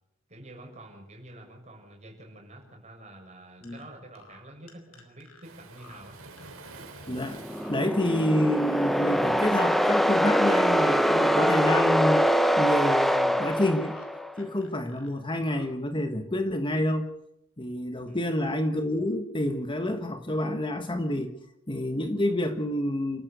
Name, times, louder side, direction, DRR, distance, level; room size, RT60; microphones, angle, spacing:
voice 1, 0.3-6.2 18.0-18.4, right 1 dB, 35° right, 2 dB, 6.8 m, -48 dB
sound 1, 3.6-3.8 4.1-4.4 4.7-5.4 5.8-6.0 6.4-7.1 7.4-7.7 8.0-8.7 9.1-9.3 9.7-10.3 10.7-10.9 11.2-11.9 12.2-12.5 12.8-14.1 14.3-15.1 15.4-15.7, left 4 dB, 90° left, 5.1 m, -53 dB
Waves surf, 5.4-11.3, right 3 dB, 90° right, 4.1 m, -50 dB
voice 2, 7.1-7.4 7.7-12.2 12.6-14.0 14.4-17.1 17.6-21.3 21.7-23.2, left 1 dB, 25° left, 7 dB, 1.5 m, -28 dB
sound 2, 7.3-14.3, equal, ahead, 0.9 m, -24 dB
29.0 x 14.5 x 6.8 m, 0.79 s
head